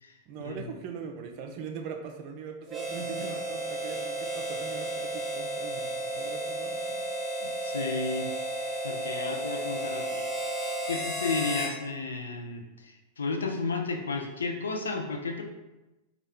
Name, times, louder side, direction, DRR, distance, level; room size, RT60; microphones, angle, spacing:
voice 1, 0.3-7.0, right 6 dB, 45° right, 4 dB, 0.5 m, -41 dB
Harmonica, 2.7-11.8, right 1 dB, 5° left, 0.7 m, -33 dB
voice 2, 7.4-8.3 8.5-10.2 10.9-15.4, left 4 dB, 70° left, 3 dB, 0.5 m, -33 dB
4.1 x 2.4 x 3.5 m, 1.0 s
figure-of-eight pair, 90°, 0 cm